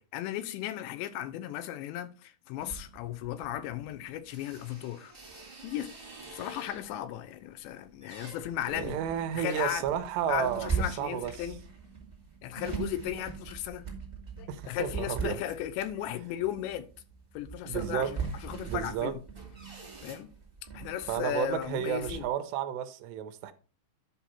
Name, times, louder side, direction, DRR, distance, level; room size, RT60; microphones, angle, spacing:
voice 1, 0.0-5.1 5.6-5.9 6.3-9.0 9.3-9.9 10.3-11.6 12.4-13.8 14.4-16.9 17.3-19.2 20.0-20.3 20.7-22.3, left 12 dB, 90° left, 3.0 m, -36 dB
sound 1, 2.6-7.1 7.6-22.3, right 5 dB, 15° right, 1.4 m, -41 dB
voice 2, 8.7-11.5 14.5-15.4 17.7-18.1 18.6-19.1 21.1-23.5, right 9 dB, 80° right, 2.7 m, -32 dB
10.5 x 5.7 x 4.3 m
omnidirectional pair, 5.1 m